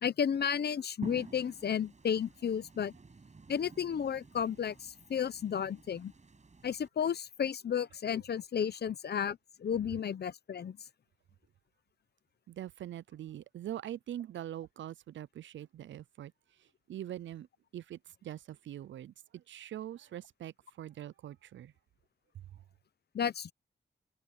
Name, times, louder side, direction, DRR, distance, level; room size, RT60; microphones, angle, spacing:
voice 1, 0.0-2.9 3.5-6.1 6.6-10.8 23.1-23.5, left 8 dB, 60° left, 0.7 m, -33 dB
sound 1, 1.0-6.9, right 4 dB, 40° right, 6.7 m, -51 dB
voice 2, 12.5-16.3 16.6-17.5 17.7-21.7, right 11 dB, 85° right, 0.4 m, -43 dB
wide cardioid pair, 100°, 19 cm